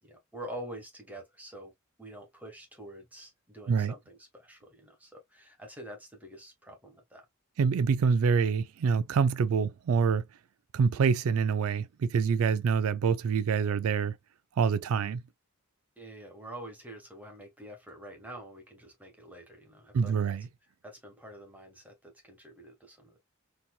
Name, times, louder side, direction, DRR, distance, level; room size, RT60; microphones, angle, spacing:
voice 1, 0.0-1.7 2.0-7.3 16.0-20.3 20.8-23.2, right 1 dB, 10° right, 1.4 m, -46 dB
voice 2, 7.6-10.2 10.7-14.2 14.6-15.2 19.9-20.4, right 6 dB, 80° right, 0.4 m, -26 dB
4.3 x 2.8 x 2.3 m
head